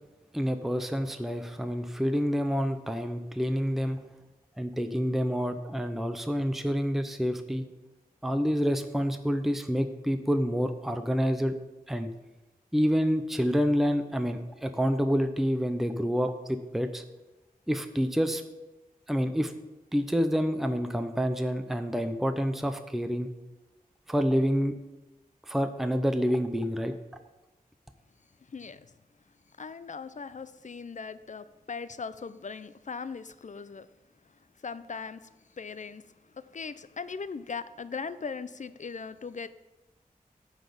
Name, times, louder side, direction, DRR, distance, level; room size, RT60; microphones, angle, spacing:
voice 1, 0.3-4.0 4.6-7.7 8.2-11.5 11.9-12.1 12.7-17.0 17.7-18.4 19.1-19.5 19.9-23.3 24.1-24.7 25.5-26.9, equal, ahead, 8 dB, 0.6 m, -28 dB
voice 2, 28.5-28.9 29.6-33.9 34.6-39.5, left 5 dB, 55° left, 14 dB, 0.4 m, -39 dB
9.6 x 4.1 x 6.9 m, 1.1 s
wide cardioid pair, 55°, 15 cm